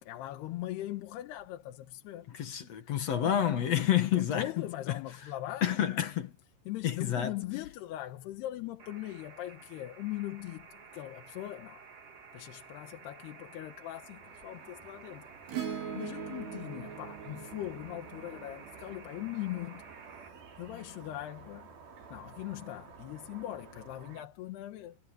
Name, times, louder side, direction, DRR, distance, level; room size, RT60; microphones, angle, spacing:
voice 1, 0.0-2.3 2.8-2.9 4.1-6.1 6.7-11.9 12.3-19.8 20.1-21.7 22.1-25.0, left 15 dB, 80° left, 3.3 m, -40 dB
voice 2, 2.3-4.5 5.6-6.3 6.8-7.3, left 10 dB, 50° left, 2.2 m, -29 dB
sound 1, 8.8-20.3, right 5 dB, 40° right, 3.3 m, -53 dB
sound 2, 14.0-24.3, right 5 dB, 65° right, 6.1 m, -52 dB
Acoustic guitar / Strum, 15.5-20.1 22.0-22.1, right 7 dB, 85° right, 6.4 m, -42 dB
omnidirectional pair, 4.6 m